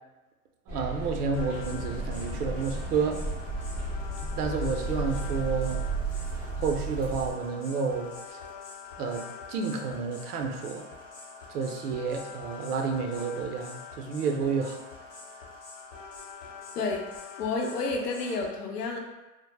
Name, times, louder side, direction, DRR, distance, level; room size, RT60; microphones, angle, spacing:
sound 1, 0.7-7.3, right 2 dB, 5° right, 0.3 m, -33 dB
voice 1, 0.7-3.2 4.2-5.8 6.6-8.4 9.0-9.2 9.5-10.8 11.5-14.8, right 5 dB, 80° right, 3 dB, 0.6 m, -30 dB
sound 2, 1.3-18.5, left 5 dB, 55° left, 0.8 m, -45 dB
voice 2, 17.4-19.0, left 3 dB, 85° left, 2 dB, 0.6 m, -30 dB
2.1 x 2.0 x 3.1 m, 1.1 s
hypercardioid pair, 125°, 45 cm